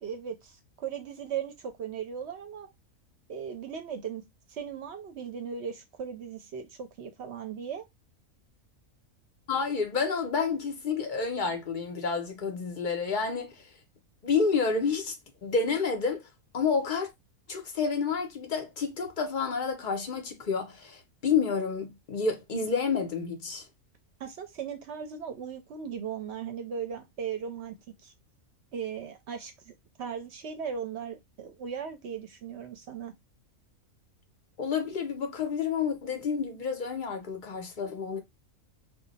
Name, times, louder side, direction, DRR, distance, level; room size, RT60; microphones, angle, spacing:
voice 1, 0.0-0.5 0.8-2.7 3.3-4.2 4.5-7.8 24.2-27.7 28.0-28.1 28.7-29.7 30.0-33.1, right 7 dB, 60° right, 0.7 m, -37 dB
voice 2, 9.5-13.6 14.2-15.1 15.4-16.2 16.5-17.1 17.5-23.6 34.6-38.2, left 5 dB, 55° left, 0.5 m, -29 dB
2.3 x 2.2 x 3.8 m
omnidirectional pair, 1.5 m